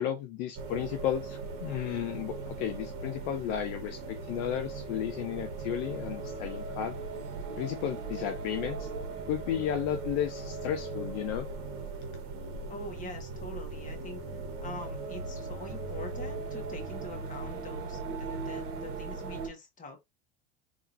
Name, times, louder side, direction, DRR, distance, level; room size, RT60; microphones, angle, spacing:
voice 1, 0.0-7.0 7.6-8.9 9.3-11.5, left 10 dB, 60° left, 0.6 m, -33 dB
sound 1, 0.5-19.5, right 3 dB, 50° right, 1.2 m, -38 dB
voice 2, 12.7-14.2 14.6-20.0, left 1 dB, 25° left, 1.5 m, -44 dB
3.6 x 3.0 x 2.7 m
hypercardioid pair, 85°, 29 cm